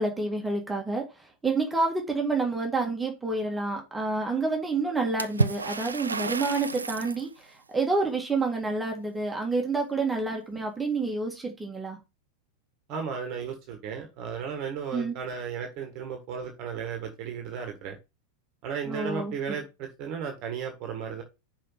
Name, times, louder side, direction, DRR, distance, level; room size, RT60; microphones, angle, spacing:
voice 1, 0.0-12.0 14.9-15.2 18.9-19.6, right 3 dB, 10° right, 1.8 m, -29 dB
Water / Splash splatter, 5.2-7.3, right 3 dB, 75° right, 0.4 m, -30 dB
voice 2, 12.9-18.0 18.6-21.2, right 6 dB, 40° right, 1.4 m, -35 dB
5.7 x 4.9 x 5.6 m
figure-of-eight pair, 90°, 0 cm